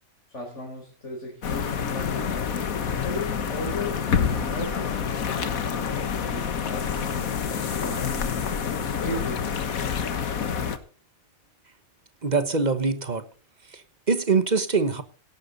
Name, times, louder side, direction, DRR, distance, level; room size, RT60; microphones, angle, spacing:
voice 1, 0.3-2.7 3.0-5.0 5.9-7.5 7.7-8.4 8.7-10.0, left 1 dB, 55° left, -2 dB, 4.7 m, -36 dB
sound 1, 1.4-10.8, left 7 dB, 80° left, 1.7 m, -28 dB
sound 2, 4.2-5.7, left 1 dB, ahead, 7.0 m, -47 dB
voice 2, 12.2-13.2 13.7-15.0, right 4 dB, 35° right, 11 dB, 1.2 m, -24 dB
17.5 x 11.5 x 4.1 m, 0.37 s
omnidirectional pair, 1.5 m